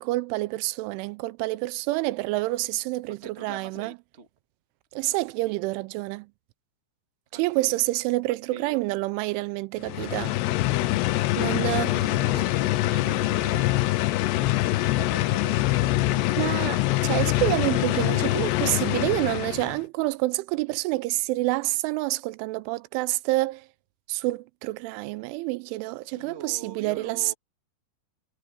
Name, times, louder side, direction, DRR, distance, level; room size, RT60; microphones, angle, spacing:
voice 1, 0.0-3.9 4.9-6.3 7.3-10.4 11.4-12.0 16.4-23.7 24.1-27.3, right 20 dB, 85° right, 2.9 m, -28 dB
voice 2, 3.1-4.3 4.9-5.2 7.3-7.8 8.3-8.8 11.8-16.3 17.2-18.7 26.1-27.3, right 5 dB, 65° right, 0.6 m, -44 dB
sound 1, 9.8-19.8, left 17 dB, 80° left, 2.6 m, -24 dB
omnidirectional pair, 5.6 m